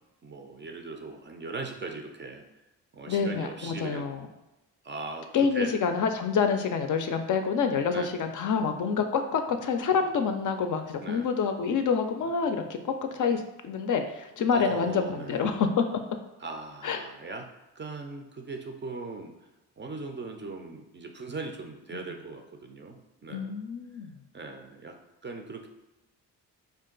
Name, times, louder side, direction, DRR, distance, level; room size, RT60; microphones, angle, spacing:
voice 1, 0.2-2.5 2.9-4.1 4.8-5.7 7.9-8.1 11.0-11.3 14.5-15.6 16.4-17.5 17.8-19.3 19.8-23.6 24.3-25.7, right 3 dB, 30° right, 4 dB, 0.4 m, -39 dB
voice 2, 3.1-4.2 5.3-15.9 16.8-17.0 21.9-22.0 23.3-24.1, left 6 dB, 50° left, 6 dB, 0.4 m, -27 dB
2.5 x 2.3 x 3.7 m, 1.0 s
supercardioid pair, 55°, 40 cm